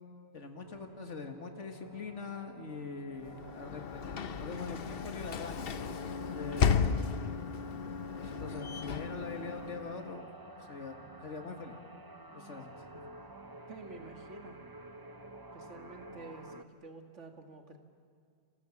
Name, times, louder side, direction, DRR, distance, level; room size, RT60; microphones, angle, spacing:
voice 1, 0.3-5.7 6.4-7.0 8.2-10.3 10.6-11.0 11.2-11.8 12.3-13.1, left 4 dB, 75° left, 5 dB, 2.2 m, -43 dB
sound 1, 0.5-16.6, right 2 dB, 20° right, 0.9 m, -51 dB
Sliding door / Slam, 3.2-10.2, left 6 dB, 55° left, 1.0 m, -34 dB
voice 2, 13.7-14.6 15.5-17.8, right 3 dB, 70° right, 4 dB, 2.5 m, -50 dB
29.5 x 27.5 x 7.3 m, 2.1 s
omnidirectional pair, 1.3 m